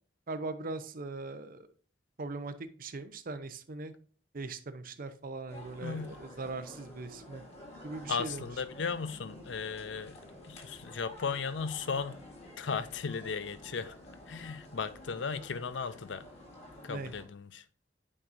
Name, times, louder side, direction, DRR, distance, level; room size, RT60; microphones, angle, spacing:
voice 1, 0.3-1.7 2.2-3.9 4.3-7.4 7.8-8.4 16.9-17.1, right 3 dB, 50° right, 0.7 m, -40 dB
sound 1, 5.5-17.2, left 1 dB, 35° left, 2.3 m, -51 dB
voice 2, 5.8-6.2 8.1-12.2 12.6-13.9 14.3-16.2 16.8-17.6, left 5 dB, 90° left, 0.6 m, -36 dB
8.6 x 5.3 x 2.6 m
head